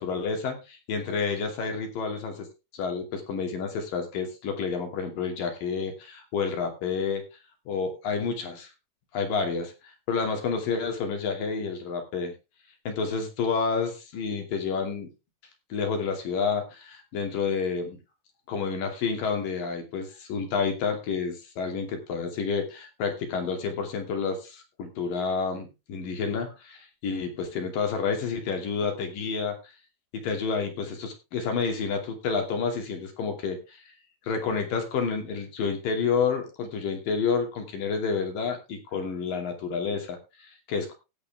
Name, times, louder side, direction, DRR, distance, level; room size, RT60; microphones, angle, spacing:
voice 1, 0.0-2.5 2.7-7.2 7.7-8.7 9.1-9.7 10.1-12.3 12.9-15.1 15.7-18.0 18.5-29.6 30.1-33.8 34.2-40.9, left 5 dB, 55° left, 4 dB, 4.1 m, -29 dB
17.0 x 8.4 x 3.5 m, 0.28 s
omnidirectional pair, 5.0 m